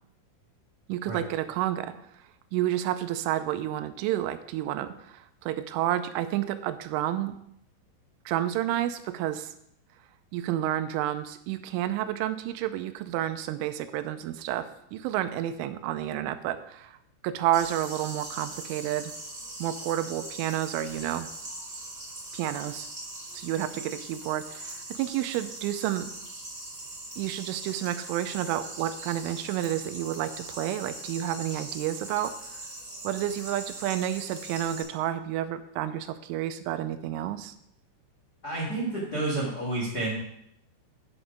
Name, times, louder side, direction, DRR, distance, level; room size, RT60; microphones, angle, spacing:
voice 1, 0.9-1.9 2.5-7.4 8.3-9.5 10.3-17.0 17.2-19.1 19.6-21.3 22.3-22.9 23.3-26.1 27.2-32.6 33.0-37.5, right 12 dB, 85° right, 10 dB, 3.1 m, -30 dB
sound 1, 17.5-34.8, right 1 dB, 20° right, 2.3 m, -41 dB
voice 2, 38.4-40.1, right 2 dB, 90° left, -4 dB, 0.8 m, -30 dB
11.0 x 6.0 x 5.2 m, 0.74 s
omnidirectional pair, 5.6 m